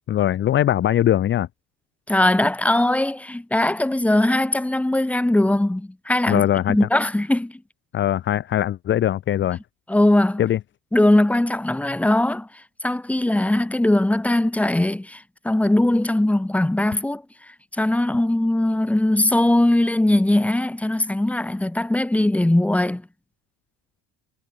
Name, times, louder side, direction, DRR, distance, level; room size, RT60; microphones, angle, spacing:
voice 1, 0.1-1.5 6.3-6.8 7.9-9.6 10.4-10.6, left 11 dB, 35° left, 1.5 m, -21 dB
voice 2, 2.1-7.6 9.9-10.4 10.9-12.5 12.8-17.2 17.7-23.0, left 1 dB, 5° left, 4.4 m, -20 dB
cardioid pair, 170°, 33 cm